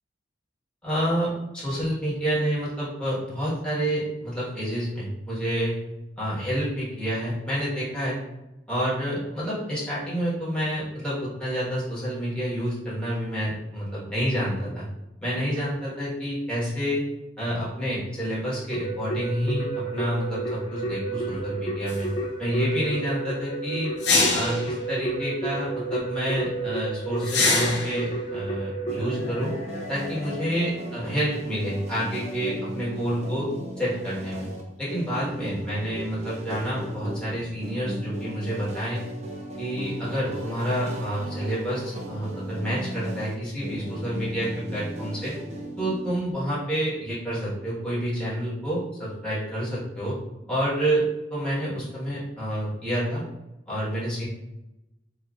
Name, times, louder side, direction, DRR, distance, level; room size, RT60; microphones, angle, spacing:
voice 1, 0.8-5.8 6.2-8.2 8.7-14.8 15.2-17.0 17.4-22.1 22.4-23.9 24.3-29.5 29.9-33.5 33.8-34.5 34.8-39.0 39.6-45.3 45.8-50.2 50.5-51.0 51.3-53.2 53.7-54.2, equal, 5° left, -10 dB, 1.4 m, -28 dB
Keyboard (musical), 18.7-31.2, right 3 dB, 30° left, 0.6 m, -32 dB
sound 1, 21.9-22.0 24.0-24.7 27.2-28.0, left 3 dB, 65° left, 0.7 m, -23 dB
sound 2, 28.9-46.3, right 1 dB, 40° right, 0.5 m, -37 dB
3.8 x 2.8 x 2.4 m, 0.93 s
head